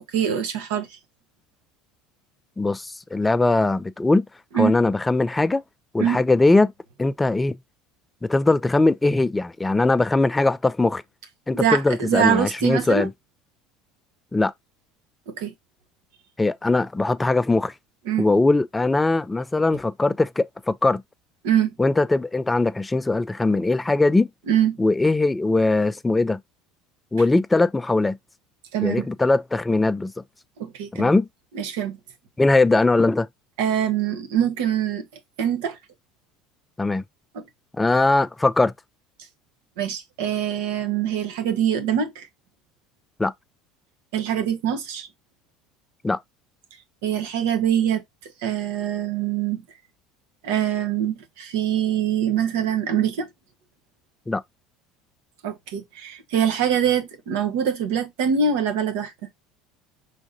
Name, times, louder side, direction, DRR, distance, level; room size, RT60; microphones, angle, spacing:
voice 1, 0.1-0.9 4.5-4.8 6.0-6.2 11.5-13.1 15.3-15.5 18.1-18.3 21.4-21.7 24.5-24.8 28.7-29.1 30.6-31.1 31.5-32.0 33.6-35.1 35.4-35.8 37.3-37.4 39.8-42.3 44.1-45.1 47.0-48.0 48.4-49.6 50.4-53.3 55.4-59.1, right 8 dB, 85° right, 1.1 m, -24 dB
voice 2, 2.6-4.3 4.5-5.6 5.9-6.7 7.0-7.5 8.2-11.0 11.5-13.1 14.3-14.5 16.4-17.7 18.2-21.0 21.8-24.3 24.8-26.4 27.1-28.2 28.8-30.1 30.9-31.3 32.4-33.3 36.8-37.0 37.7-38.7 43.2-43.3 46.0-46.2 54.3-54.4, left 2 dB, 10° left, 0.3 m, -20 dB
5.2 x 3.5 x 2.6 m
supercardioid pair, 115°, 0 cm